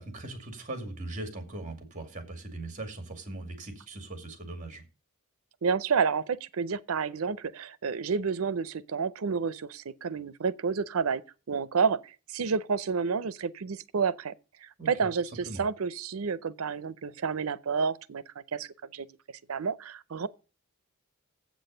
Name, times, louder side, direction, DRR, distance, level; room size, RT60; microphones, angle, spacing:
voice 1, 0.0-4.8 14.8-15.1 15.5-15.6, right 2 dB, 35° right, 2.3 m, -40 dB
voice 2, 5.6-11.2 11.5-14.3 14.6-19.1 19.5-20.3, right 5 dB, 90° right, 0.6 m, -30 dB
8.0 x 6.2 x 6.7 m
head